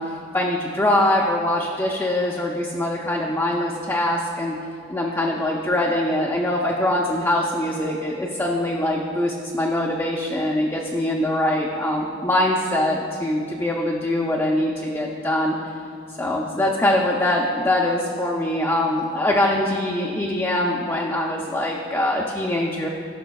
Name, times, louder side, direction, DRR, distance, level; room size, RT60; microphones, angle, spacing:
voice 1, 0.0-4.6 4.9-15.6 16.2-22.9, left 1 dB, 15° left, -2 dB, 0.5 m, -23 dB
15.5 x 6.0 x 2.3 m, 2.4 s
head